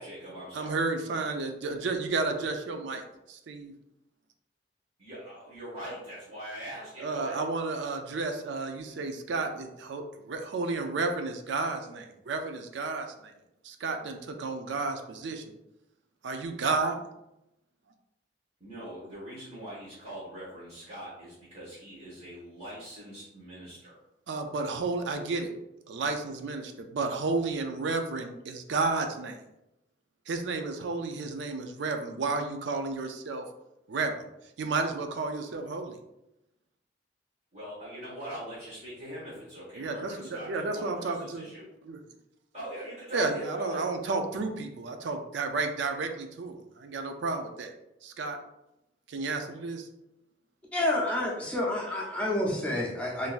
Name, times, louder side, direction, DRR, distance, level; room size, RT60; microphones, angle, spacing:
voice 1, 0.0-0.8 5.0-7.5 18.6-23.9 37.5-41.7 42.5-43.9, right 1 dB, 40° right, -10 dB, 1.2 m, -42 dB
voice 2, 0.5-3.0 3.3-3.7 7.0-13.3 13.6-15.4 16.2-17.0 24.3-25.5 25.9-29.4 30.3-33.4 33.9-34.1 34.6-36.0 39.8-41.5 41.9-42.0 43.1-47.7 48.0-48.4 49.1-49.9, right 3 dB, 85° right, 5 dB, 0.4 m, -32 dB
voice 3, 50.7-53.3, left 1 dB, 5° left, -4 dB, 0.5 m, -29 dB
3.8 x 2.6 x 2.4 m, 0.88 s
head